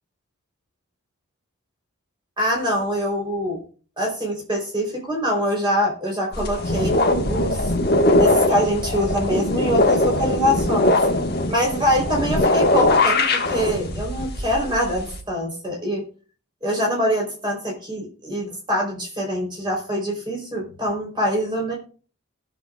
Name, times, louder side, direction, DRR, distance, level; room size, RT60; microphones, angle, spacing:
voice 1, 2.4-3.6 4.0-7.7 8.2-11.0 11.5-16.0 16.6-21.7, equal, 20° right, -1 dB, 3.5 m, -24 dB
sound 1, 6.3-15.2, left 2 dB, 45° left, 1.4 m, -21 dB
20.5 x 6.9 x 2.4 m, 0.40 s
head